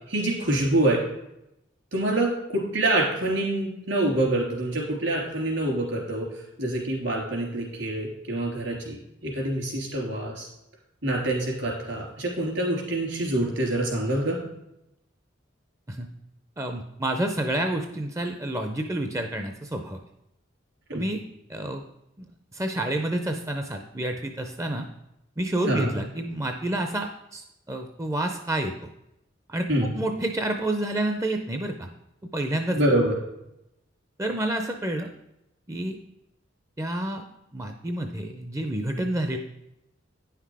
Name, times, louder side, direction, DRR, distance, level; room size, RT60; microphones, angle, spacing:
voice 1, 0.1-1.0 1.9-6.3 6.6-10.5 11.0-14.4 20.9-21.1 25.7-25.9 29.7-29.9 32.7-33.1, right 1 dB, 70° right, -1 dB, 3.3 m, -26 dB
voice 2, 16.6-20.0 20.9-21.2 21.5-21.8 22.2-24.9 25.4-28.7 29.5-29.7 29.9-31.9 32.3-32.8 34.2-35.1 35.7-36.0 36.8-37.2 37.5-39.4, right 1 dB, 15° right, 5 dB, 0.5 m, -29 dB
9.7 x 5.8 x 4.8 m, 0.86 s
head